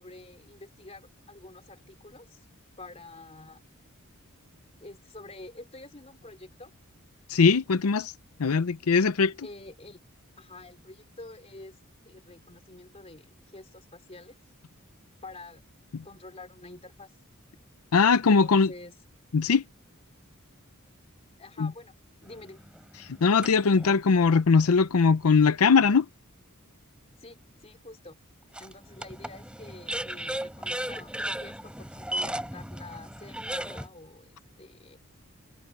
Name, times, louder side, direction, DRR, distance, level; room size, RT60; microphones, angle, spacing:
voice 1, 0.0-2.4 2.8-3.6 4.8-6.7 9.4-10.0 10.4-11.8 12.0-14.3 15.2-15.6 16.0-17.1 18.2-18.9 21.4-21.9 22.2-22.6 27.2-28.2 28.6-35.0, left 2 dB, 30° left, 3.4 m, -47 dB
voice 2, 7.3-8.1 8.4-9.3 17.9-18.7 19.3-19.6 21.6-21.7 23.2-26.1, left 5 dB, 90° left, 0.6 m, -21 dB
sound 1, 22.2-23.9 24.6-24.7 28.5-33.9, right 1 dB, 5° right, 3.4 m, -36 dB
head